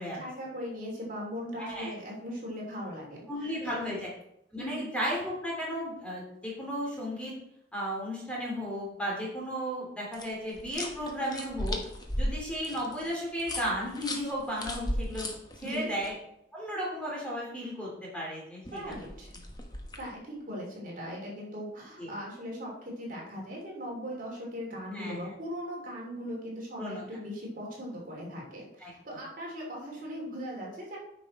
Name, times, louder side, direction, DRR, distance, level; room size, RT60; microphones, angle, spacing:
voice 1, 0.2-3.7 4.6-4.9 15.6-15.9 18.7-19.3 20.0-31.0, equal, 50° right, -3 dB, 3.0 m, -39 dB
voice 2, 1.6-1.9 3.3-4.1 4.5-7.3 7.7-11.8 12.1-15.3 15.6-16.2 16.5-18.9 22.0-22.1 24.9-25.2 26.8-27.0 28.8-28.9, equal, 5° left, -4 dB, 2.9 m, -34 dB
sound 1, 10.1-16.1 18.6-20.1, left 1 dB, 20° left, 1.1 m, -36 dB
9.4 x 6.1 x 4.2 m, 0.78 s
head